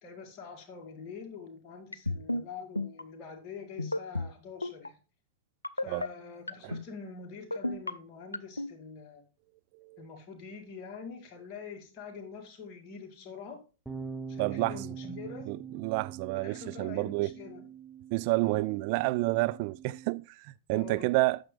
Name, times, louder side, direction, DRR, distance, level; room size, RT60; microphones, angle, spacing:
voice 1, 0.0-5.0 5.7-9.2 10.0-13.6 14.3-15.5 16.3-17.7 18.4-18.6 20.7-21.1, left 5 dB, 35° left, 2.2 m, -45 dB
sound 1, 1.9-2.4 2.8-3.0 3.8-4.3 4.6-4.9 5.6-6.1 6.5-6.8 7.5-7.9 8.3-8.7, left 2 dB, 85° left, 0.4 m, -31 dB
sound 2, 13.9-20.1, right 6 dB, ahead, 0.8 m, -44 dB
voice 2, 14.4-14.9 15.5-17.3 18.1-21.4, right 22 dB, 45° right, 0.3 m, -30 dB
9.0 x 6.4 x 3.3 m
figure-of-eight pair, 100°, 0 cm